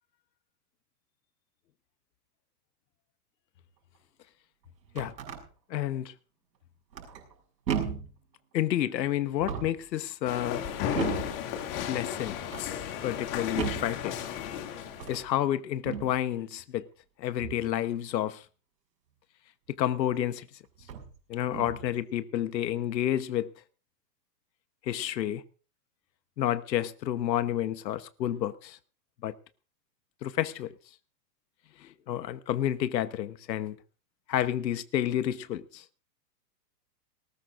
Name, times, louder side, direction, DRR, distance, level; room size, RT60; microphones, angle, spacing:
sound 1, 4.7-5.4 6.9-7.3 7.7-8.2 9.3-9.9 10.9-11.4 12.2-12.7 13.6-14.0 14.9-15.3 15.8-16.2 17.4-17.7 19.8-19.9 20.8-21.1 21.5-21.9, right 7 dB, 90° right, 6.1 m, -35 dB
voice 1, 5.7-6.1 8.5-10.6 11.9-12.4 13.0-14.2 15.1-16.8 17.2-18.4 19.8-20.5 21.3-23.5 24.8-25.4 26.4-28.8 29.2-29.3 30.2-30.7 31.8-33.8 34.3-35.8, left 11 dB, 85° left, 1.1 m, -30 dB
sound 2, 10.3-15.2, left 9 dB, 35° left, 2.4 m, -34 dB
19.5 x 19.0 x 2.5 m
hypercardioid pair, 165°, 49 cm